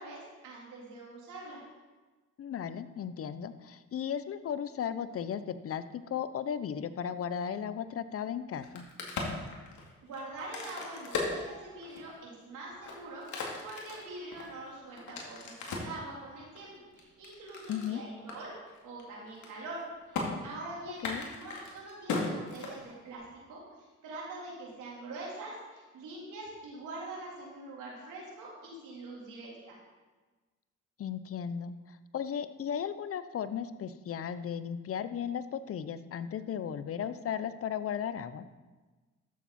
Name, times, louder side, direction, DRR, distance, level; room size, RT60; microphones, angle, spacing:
voice 1, 0.0-1.6 10.0-13.3 13.6-18.5 18.8-29.8, right 2 dB, 85° right, -4 dB, 3.7 m, -44 dB
voice 2, 2.4-8.9 17.7-18.0 21.0-21.2 31.0-38.5, left 8 dB, 50° left, 13 dB, 0.7 m, -36 dB
Crack, 8.5-12.2 12.7-16.0 16.6-17.9 18.3-18.4 18.7-19.0 19.3-19.8 20.1-20.3 20.9-23.2, left 4 dB, 70° left, 2.3 m, -37 dB
13.0 x 7.3 x 4.2 m, 1.3 s
cardioid pair, 90°, 30 cm